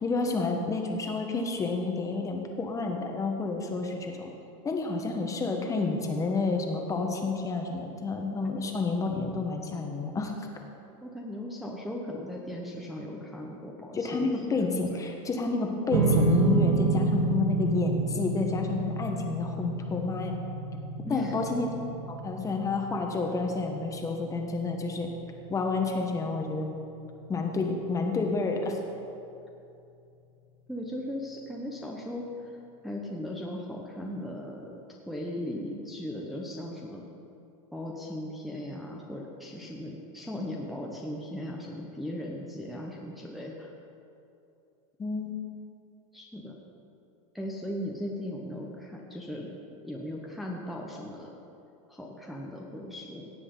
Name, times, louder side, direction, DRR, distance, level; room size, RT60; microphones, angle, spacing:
voice 1, 0.0-4.3 4.6-10.3 13.9-20.4 21.1-21.7 22.1-25.1 25.5-26.8 27.3-28.8 45.0-45.3, left 3 dB, 20° left, 3 dB, 1.2 m, -30 dB
voice 2, 11.0-15.0 21.0-21.4 30.7-32.2 32.8-34.8 35.1-37.1 37.7-43.7 46.1-46.5 47.3-49.5 49.8-51.3 51.9-53.3, left 1 dB, ahead, -3 dB, 1.0 m, -38 dB
sound 1, 15.9-28.4, right 3 dB, 90° right, 1.7 m, -31 dB
17.0 x 7.6 x 3.9 m, 2.7 s
supercardioid pair, 130°, 17 cm